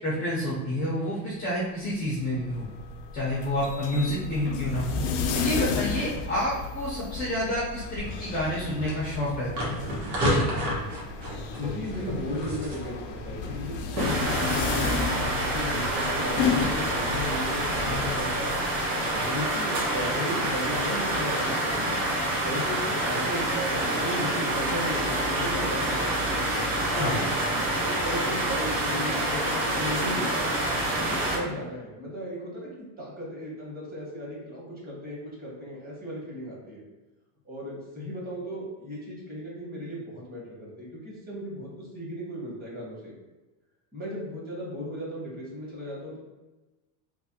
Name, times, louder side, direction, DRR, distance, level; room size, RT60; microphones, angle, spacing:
voice 1, 0.0-2.7 3.1-5.0 5.3-9.8 10.3-10.4 27.0-27.2, left 1 dB, 20° left, -6 dB, 0.5 m, -29 dB
sound 1, 2.2-19.2, left 5 dB, 65° left, 0.5 m, -33 dB
sound 2, 8.0-15.9, equal, 75° right, 1.3 m, -33 dB
voice 2, 11.5-18.5 18.9-22.1 22.4-26.3 26.7-27.3 27.8-30.5 31.0-36.8 37.4-43.1 43.9-46.2, equal, 20° right, -6 dB, 1.2 m, -36 dB
sound 3, 14.0-31.4, right 1 dB, 60° right, 1.4 m, -27 dB
3.2 x 2.2 x 2.8 m, 1.1 s
supercardioid pair, 125°, 50 cm